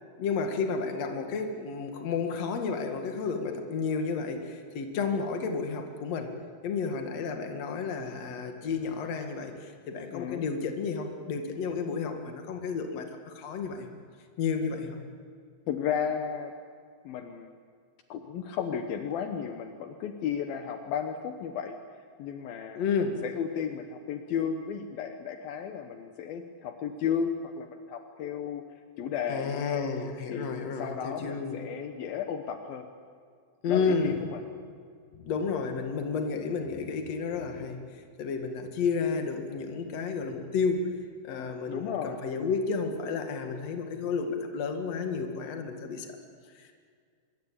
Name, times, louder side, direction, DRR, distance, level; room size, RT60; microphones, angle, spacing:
voice 1, 0.2-6.3 6.6-14.0 14.4-15.0 22.8-23.2 29.3-31.6 33.6-34.2 35.1-37.8 38.2-40.9 41.2-46.2 46.6-46.7, left 5 dB, 50° left, 5 dB, 2.8 m, -31 dB
voice 2, 10.1-10.5 15.7-16.5 17.0-17.5 18.1-21.8 22.2-22.8 23.2-28.6 29.0-29.9 30.3-30.5 30.8-32.9 33.7-34.4 41.7-42.2, left 7 dB, 70° left, 6 dB, 2.8 m, -33 dB
25.0 x 22.0 x 8.7 m, 2.1 s
omnidirectional pair, 4.6 m